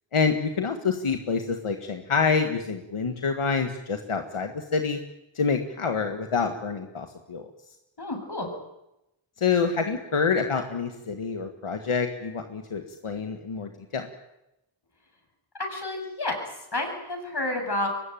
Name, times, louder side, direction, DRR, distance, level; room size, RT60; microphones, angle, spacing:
voice 1, 0.1-5.0 5.4-7.5 9.4-14.1, left 5 dB, 90° left, 5 dB, 1.9 m, -27 dB
voice 2, 8.0-8.5 15.6-17.9, left 2 dB, 55° left, 4 dB, 7.6 m, -30 dB
24.0 x 20.5 x 9.3 m, 0.90 s
wide cardioid pair, 55°, 49 cm